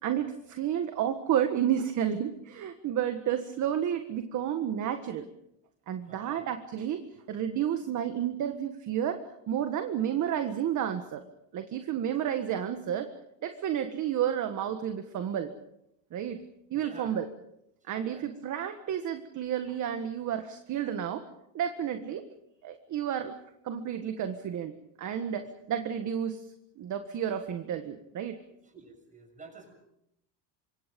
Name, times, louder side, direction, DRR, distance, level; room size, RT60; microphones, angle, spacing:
voice 1, 0.0-5.3 5.9-7.0 7.3-11.2 11.5-13.1 13.4-15.5 16.1-16.4 16.7-17.3 17.8-21.2 21.5-22.3 22.6-23.3 23.6-24.7 25.0-26.5 26.8-28.4, right 9 dB, 35° right, 7 dB, 1.6 m, -31 dB
voice 2, 6.0-6.5 16.7-17.1 17.8-18.3 25.4-25.5 28.7-29.7, right 3 dB, 15° right, 5 dB, 6.9 m, -49 dB
27.5 x 25.0 x 5.3 m, 0.80 s
cardioid pair, 155°, 50 cm